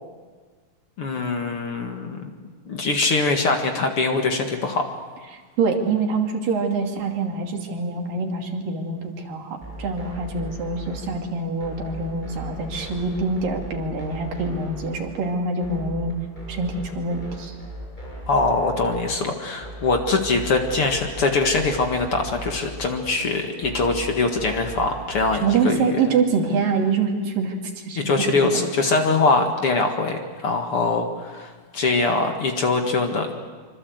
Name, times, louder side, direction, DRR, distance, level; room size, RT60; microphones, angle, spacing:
voice 1, 1.0-2.3 2.7-4.8 18.3-25.9 28.0-33.3, left 3 dB, 45° left, 4 dB, 2.4 m, -23 dB
voice 2, 5.3-16.1 16.5-17.5 25.4-28.5, right 4 dB, 85° right, 2 dB, 4.3 m, -25 dB
sound 1, 9.6-25.6, right 1 dB, 10° left, 7.3 m, -38 dB
25.5 x 25.0 x 8.0 m, 1.5 s
omnidirectional pair, 3.9 m